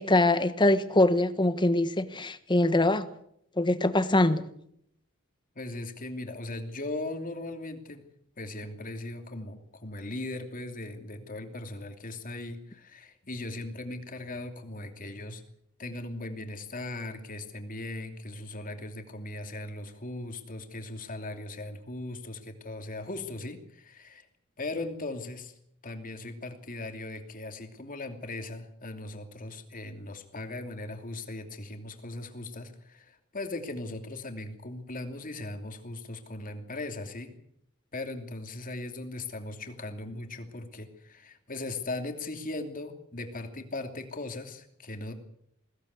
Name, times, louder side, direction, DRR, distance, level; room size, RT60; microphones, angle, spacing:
voice 1, 0.0-3.0 3.6-4.4, left 2 dB, 20° left, 11 dB, 1.3 m, -23 dB
voice 2, 5.5-8.0 8.4-15.4 15.8-24.3 24.6-25.5 25.8-37.3 37.9-45.1, left 2 dB, 40° left, 6 dB, 2.8 m, -38 dB
22.0 x 16.5 x 8.3 m, 0.74 s
head